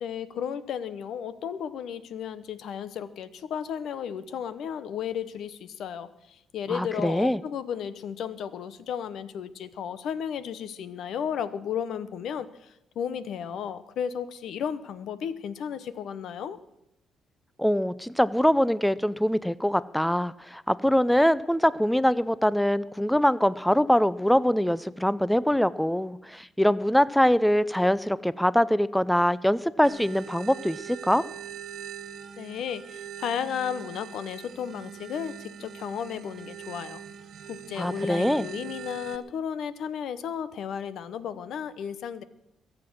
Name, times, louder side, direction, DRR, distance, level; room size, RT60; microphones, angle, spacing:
voice 1, 0.0-16.6 32.4-37.0 37.5-42.2, left 8 dB, 75° left, 15 dB, 0.9 m, -34 dB
voice 2, 6.7-7.4 17.6-31.2 37.8-38.5, equal, 5° left, 18 dB, 0.4 m, -23 dB
sound 1, 29.8-39.2, right 9 dB, 60° right, 0.9 m, -42 dB
22.0 x 7.8 x 6.3 m, 0.83 s
cardioid pair, 90°, 0 cm